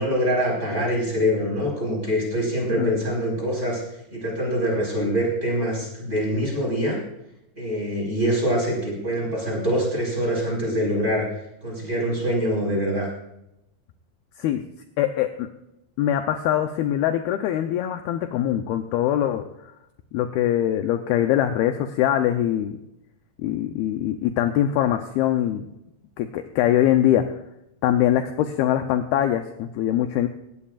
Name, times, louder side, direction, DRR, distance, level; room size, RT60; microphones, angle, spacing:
voice 1, 0.0-3.8 4.1-7.0 7.6-11.2 11.6-13.1, equal, 15° right, -2 dB, 4.6 m, -24 dB
voice 2, 15.0-15.5 16.0-19.7 20.1-22.8 23.4-25.6 26.2-27.2 27.8-30.3, left 11 dB, 80° left, 6 dB, 2.3 m, -23 dB
18.5 x 16.0 x 2.4 m, 0.84 s
omnidirectional pair, 5.0 m